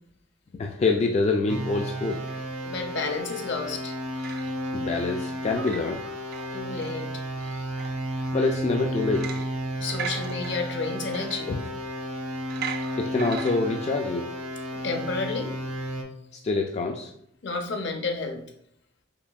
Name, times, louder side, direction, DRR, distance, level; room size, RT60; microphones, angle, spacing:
voice 1, 0.5-2.3 4.7-6.0 8.3-9.4 11.5-11.6 13.0-14.3 16.3-17.1, left 3 dB, 35° left, 2 dB, 0.3 m, -26 dB
sound 1, 1.5-16.0, equal, 75° right, 1.0 m, -33 dB
sound 2, 2.1-2.4 3.0-3.4 3.9-4.9 5.3-7.0 7.4-8.5 9.1-9.6 9.9-12.0 12.5-13.5, right 6 dB, 55° right, 0.4 m, -39 dB
voice 2, 2.6-4.0 6.5-7.2 9.8-11.6 14.8-15.5 17.4-18.4, left 4 dB, 65° left, 4 dB, 0.7 m, -31 dB
5.9 x 3.3 x 2.3 m, 0.71 s
head